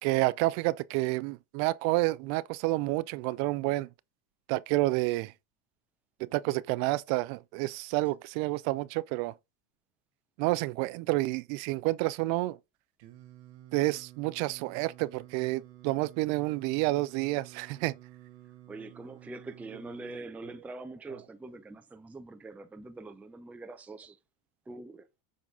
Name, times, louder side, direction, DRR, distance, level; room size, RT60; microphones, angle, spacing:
voice 1, 0.0-3.9 4.5-5.3 6.2-9.3 10.4-12.6 13.7-17.9, right 20 dB, 65° right, 0.5 m, -29 dB
Singing, 13.0-20.2, right 15 dB, 80° right, 2.3 m, -52 dB
voice 2, 18.7-24.2 24.7-25.1, right 2 dB, 5° right, 0.4 m, -44 dB
7.5 x 4.0 x 3.6 m
supercardioid pair, 125°, 49 cm